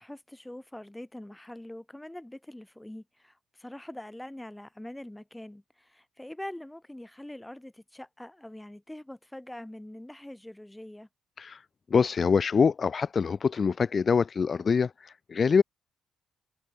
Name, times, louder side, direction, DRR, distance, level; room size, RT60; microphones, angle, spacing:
voice 1, 0.0-11.1, left 1 dB, 5° left, 5.3 m, -44 dB
voice 2, 11.4-15.6, left 5 dB, 40° left, 1.2 m, -25 dB
cardioid pair, 90°, 0 cm